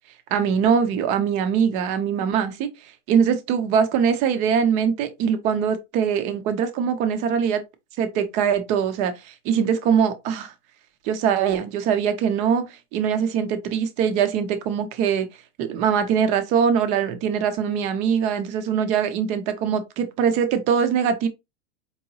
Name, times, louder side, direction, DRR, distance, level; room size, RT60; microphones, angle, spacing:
voice 1, 0.3-2.7 3.1-7.6 8.0-10.5 11.0-15.3 15.6-21.3, right 7 dB, 20° right, 0.4 m, -22 dB
4.6 x 2.8 x 2.6 m
supercardioid pair, 160°, 34 cm